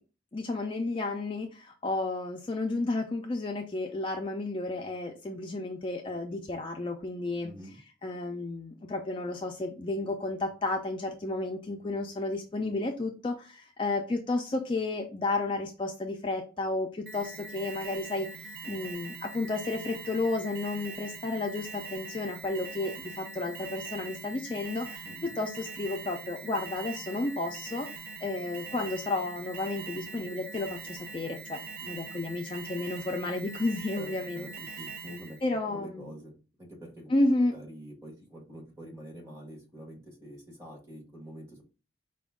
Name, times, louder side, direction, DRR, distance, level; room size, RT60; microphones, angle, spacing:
voice 1, 0.3-7.5 8.0-27.9 28.2-34.5 35.4-36.1 37.1-37.6, left 2 dB, 25° left, 2 dB, 0.4 m, -32 dB
voice 2, 7.4-7.8 25.0-25.3 34.0-36.3 36.6-37.2 37.5-41.6, equal, 15° right, -2 dB, 1.4 m, -46 dB
Alarm, 17.1-35.5, right 4 dB, 50° right, 0.5 m, -43 dB
5.0 x 2.2 x 3.5 m, 0.35 s
head